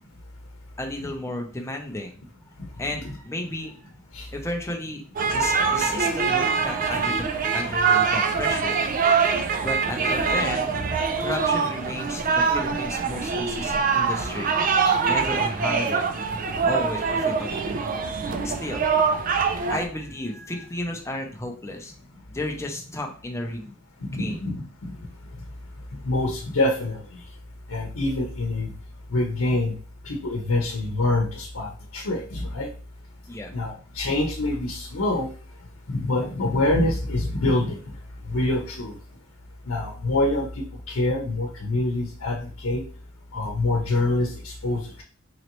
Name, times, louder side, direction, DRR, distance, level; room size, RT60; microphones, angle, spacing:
voice 1, 0.8-2.2 2.8-3.9 4.3-5.0 5.3-7.3 7.5-8.8 9.6-10.7 11.2-14.6 15.0-16.1 16.6-17.7 18.4-21.9 22.3-23.7 24.1-24.4 33.3-33.5, left 1 dB, 15° left, 3 dB, 0.6 m, -33 dB
sound 1, 5.1-19.8, right 5 dB, 40° right, 0.4 m, -24 dB
voice 2, 24.1-24.6 26.0-27.0 27.7-28.7 29.1-29.7 30.0-32.7 33.5-35.3 35.9-37.8 38.3-38.9 39.7-42.8 43.3-45.0, left 2 dB, 85° left, 1 dB, 0.8 m, -25 dB
4.0 x 3.1 x 3.0 m, 0.40 s
head